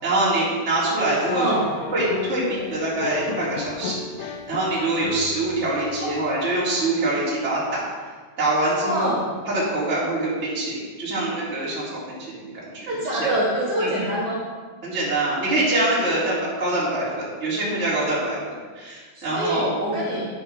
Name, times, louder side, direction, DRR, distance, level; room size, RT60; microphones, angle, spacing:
voice 1, 0.0-1.6 1.9-7.8 8.4-9.1 9.4-13.3 13.8-14.1 14.8-19.7 20.1-20.2, right 2 dB, 15° right, -8 dB, 3.4 m, -25 dB
sound 1, 1.3-6.5, left 5 dB, 90° left, 1.9 m, -35 dB
voice 2, 1.3-1.7 6.0-6.2 8.8-9.2 12.9-14.4 19.3-20.3, right 1 dB, 50° right, -7 dB, 3.6 m, -25 dB
11.0 x 10.5 x 3.7 m, 1.5 s
omnidirectional pair, 4.8 m